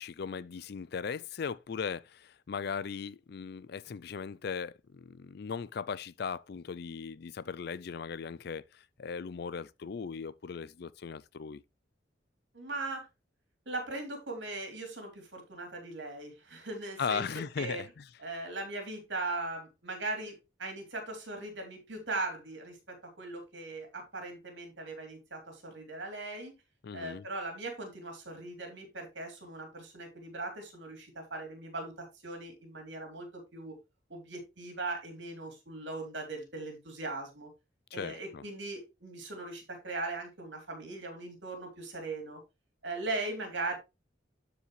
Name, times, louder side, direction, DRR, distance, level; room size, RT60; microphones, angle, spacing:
voice 1, 0.0-11.6 17.0-18.1 26.8-27.3 37.9-38.4, left 6 dB, 55° left, 0.4 m, -38 dB
voice 2, 12.5-13.0 13.6-17.2 17.6-17.8 18.2-26.5 26.9-33.8 34.1-37.5 37.9-42.4 42.8-43.8, right 2 dB, 70° right, 3.3 m, -39 dB
12.5 x 4.9 x 3.2 m
head